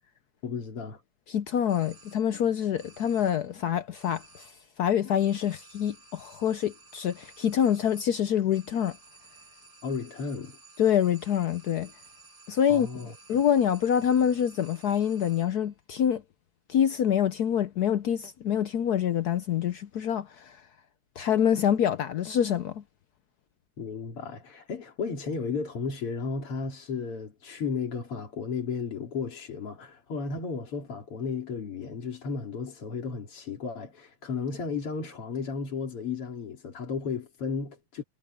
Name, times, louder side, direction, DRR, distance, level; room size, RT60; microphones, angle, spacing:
voice 1, 0.4-1.0 9.8-10.6 12.7-13.1 23.8-38.0, left 5 dB, 90° left, 3.8 m, -34 dB
voice 2, 1.3-4.5 4.8-9.0 10.8-11.9 12.5-16.2 16.7-20.6 21.2-22.8, left 9 dB, 70° left, 0.9 m, -26 dB
sound 1, 1.7-2.5 2.8-3.6 3.9-4.8 5.2-15.7, right 3 dB, 15° right, 5.6 m, -55 dB
omnidirectional pair, 2.4 m